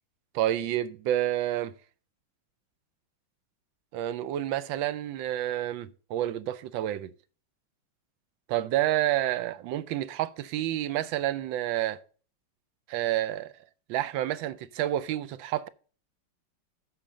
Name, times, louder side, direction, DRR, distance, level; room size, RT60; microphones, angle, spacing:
voice 1, 0.3-1.7 3.9-7.1 8.5-12.0 12.9-13.5 13.9-15.7, right 13 dB, 75° right, 1.3 m, -29 dB
12.5 x 4.3 x 5.1 m
omnidirectional pair, 2.2 m